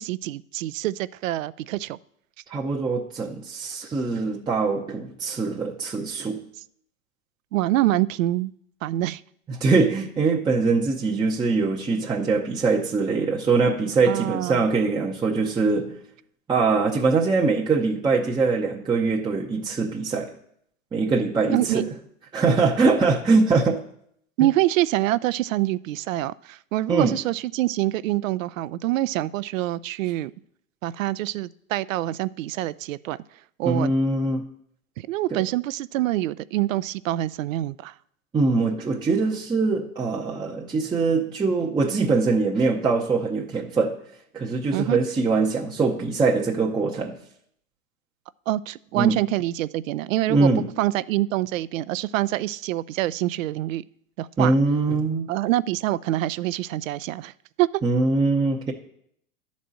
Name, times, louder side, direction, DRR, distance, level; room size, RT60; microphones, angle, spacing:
voice 1, 0.0-2.0 7.5-8.5 8.8-9.2 14.1-14.6 21.5-21.9 24.4-30.3 30.8-33.2 33.6-33.9 35.0-37.9 44.7-45.0 48.5-50.5 50.8-53.8 54.2-54.5 55.3-57.3 57.6-57.7, right 15 dB, 70° right, 18 dB, 0.5 m, -25 dB
voice 2, 2.5-6.4 9.5-16.0 16.5-20.3 20.9-21.9 22.3-23.8 26.9-27.2 33.7-34.4 35.3-35.4 38.3-44.0 44.3-47.2 49.0-49.2 50.3-50.7 54.4-55.3 57.8-58.7, right 4 dB, 10° right, -2 dB, 0.6 m, -22 dB
11.0 x 4.2 x 7.6 m, 0.70 s
hypercardioid pair, 115°, 41 cm